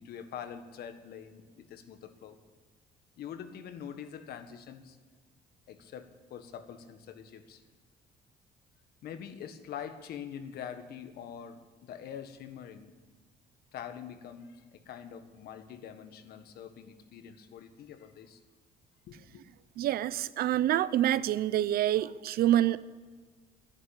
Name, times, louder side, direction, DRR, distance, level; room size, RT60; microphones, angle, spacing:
voice 1, 0.0-2.4 3.2-5.0 5.7-7.6 9.0-12.9 13.7-18.4 19.1-19.4, left 8 dB, 70° left, 9 dB, 1.5 m, -44 dB
voice 2, 19.8-22.8, right 12 dB, 65° right, 17 dB, 0.6 m, -26 dB
13.0 x 11.0 x 8.6 m, 1.4 s
cardioid pair, 110°, 17 cm